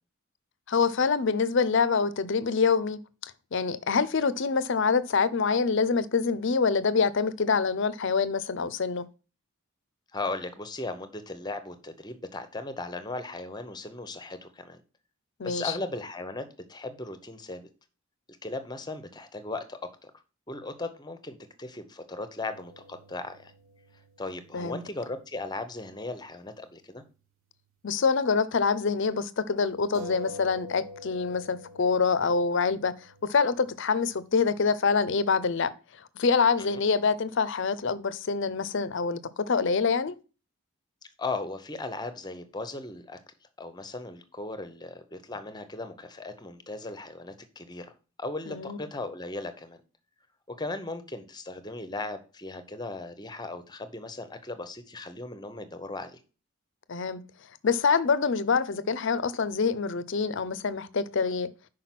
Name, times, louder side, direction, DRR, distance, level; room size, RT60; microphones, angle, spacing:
voice 1, 0.7-9.1 15.4-15.7 24.5-24.8 27.8-32.9 33.2-35.7 36.2-39.2 39.5-40.2 48.5-48.8 56.9-57.2 57.6-61.5, left 5 dB, 55° left, 0.5 m, -26 dB
voice 2, 10.1-14.8 15.4-17.7 18.4-20.1 20.5-23.5 24.2-27.0 36.6-36.8 41.2-43.2 43.6-47.9 48.2-49.8 50.6-56.2, left 2 dB, 20° left, 0.8 m, -37 dB
sound 1, 22.5-26.3 26.6-26.7 29.9-35.2, left 2 dB, 75° right, 2.3 m, -47 dB
5.9 x 4.9 x 5.8 m
head